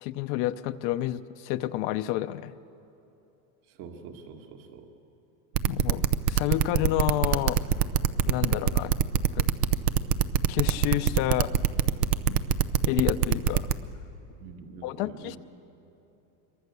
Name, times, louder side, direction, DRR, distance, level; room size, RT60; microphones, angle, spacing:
voice 1, 0.0-2.5 5.6-7.6 8.3-8.9 9.3-9.4 10.5-11.5 12.3-12.4 12.9-13.7 14.8-15.4, left 14 dB, 55° left, 12 dB, 0.7 m, -29 dB
voice 2, 3.8-4.9 14.4-15.4, right 5 dB, 65° right, 3 dB, 2.1 m, -45 dB
sound 1, 5.5-13.7, right 10 dB, 90° right, 0.9 m, -23 dB
26.0 x 23.0 x 6.9 m, 2.9 s
supercardioid pair, 145°, 45 cm